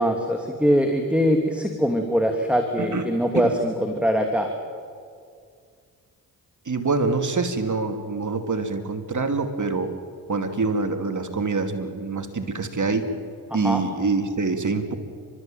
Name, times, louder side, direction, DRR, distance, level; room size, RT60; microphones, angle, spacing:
voice 1, 0.0-4.5 13.6-13.8, equal, 5° right, 3 dB, 2.8 m, -22 dB
voice 2, 6.7-10.0 10.3-13.1 13.5-14.9, right 4 dB, 40° right, 7 dB, 2.6 m, -25 dB
30.0 x 13.5 x 9.0 m, 2.2 s
supercardioid pair, 45°, 44 cm